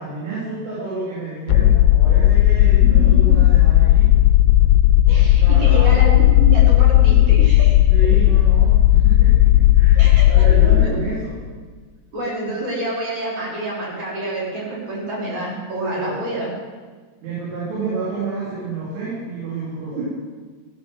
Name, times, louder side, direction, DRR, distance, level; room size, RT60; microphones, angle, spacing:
voice 1, 0.0-4.1 5.4-6.0 7.9-11.4 15.9-16.2 17.2-20.0, right 3 dB, 80° right, -8 dB, 6.4 m, -30 dB
sound 1, 1.5-10.9, left 14 dB, 85° left, 2.8 m, -13 dB
voice 2, 2.6-3.1 5.1-7.8 10.0-11.0 12.1-16.5 19.9-20.0, right 1 dB, 40° right, -4 dB, 4.3 m, -28 dB
17.0 x 11.5 x 6.3 m, 1.4 s
omnidirectional pair, 5.6 m